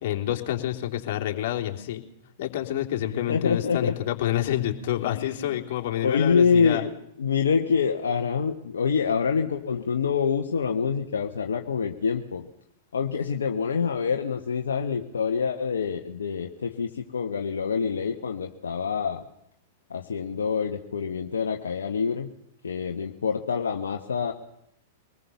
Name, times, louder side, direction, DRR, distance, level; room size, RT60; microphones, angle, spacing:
voice 1, 0.0-2.0 2.4-6.9, left 12 dB, 55° left, 2 dB, 3.4 m, -28 dB
voice 2, 3.0-4.0 5.0-5.6 6.0-12.5 12.9-19.2 19.9-22.3 22.6-24.3, left 6 dB, 80° left, 3 dB, 1.4 m, -26 dB
24.0 x 19.5 x 7.1 m, 0.77 s
hypercardioid pair, 105°, 0 cm